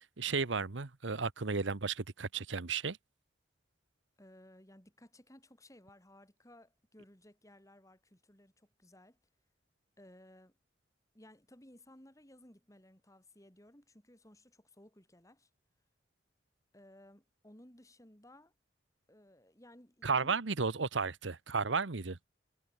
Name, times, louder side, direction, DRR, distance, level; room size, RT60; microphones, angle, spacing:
voice 1, 0.2-3.0 20.0-22.2, right 4 dB, 90° right, 1.1 m, -33 dB
voice 2, 4.2-9.2 10.0-10.5 11.1-15.5 16.7-18.5 19.1-20.4, left 1 dB, 15° left, 4.1 m, -59 dB
head